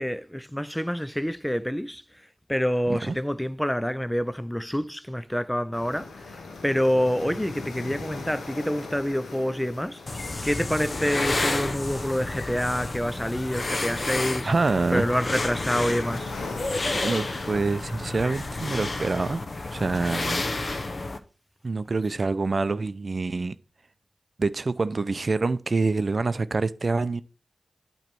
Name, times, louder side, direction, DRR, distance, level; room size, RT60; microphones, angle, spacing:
voice 1, 0.0-2.0 2.5-10.0 10.4-14.5 14.9-16.3, equal, 5° left, 0.4 m, -27 dB
sound 1, 5.7-20.9, left 3 dB, 90° left, 1.1 m, -42 dB
sound 2, 10.1-21.2, left 2 dB, 50° left, 0.8 m, -30 dB
voice 2, 14.4-15.1 16.9-19.4 19.7-20.7 21.6-23.6 24.4-27.2, right 3 dB, 55° right, 0.5 m, -26 dB
8.9 x 3.1 x 6.1 m
cardioid pair, 40°, 0 cm